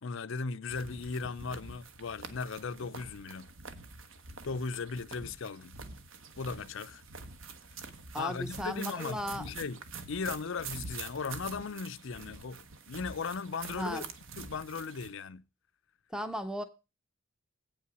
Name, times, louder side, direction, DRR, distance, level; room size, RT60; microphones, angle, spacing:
voice 1, 0.0-3.5 4.4-5.8 6.4-7.0 8.2-9.8 10.1-14.0 14.4-15.4, left 4 dB, 60° left, 0.5 m, -37 dB
sound 1, 0.7-15.1, right 4 dB, 60° right, 1.0 m, -46 dB
voice 2, 8.1-9.5 13.8-14.1 16.1-16.6, equal, 5° right, 0.6 m, -36 dB
8.7 x 5.6 x 6.2 m
head